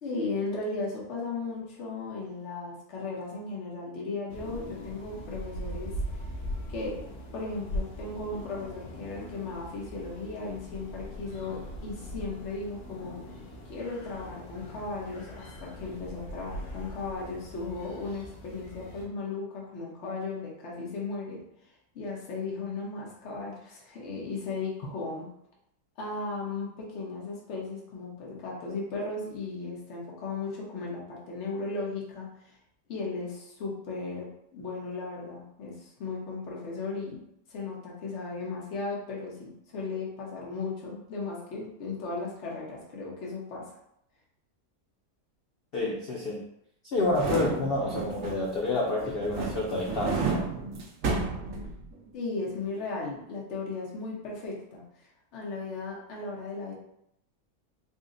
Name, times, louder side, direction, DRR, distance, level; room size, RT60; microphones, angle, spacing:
voice 1, 0.0-5.9 6.7-7.0 7.3-13.1 13.7-21.4 21.9-25.3 26.0-32.6 32.9-37.2 37.5-43.6 52.1-54.8 55.3-56.7, left 3 dB, 50° left, -3 dB, 1.2 m, -36 dB
sound 1, 4.3-19.1, equal, 70° left, 1.2 m, -40 dB
voice 2, 45.7-46.4 46.9-50.5, left 2 dB, 90° left, -2 dB, 0.5 m, -29 dB
sound 2, 47.0-48.6 49.0-52.1 52.4-52.5, right 4 dB, 65° right, 1.0 m, -32 dB
3.9 x 2.1 x 3.8 m, 0.75 s
omnidirectional pair, 1.7 m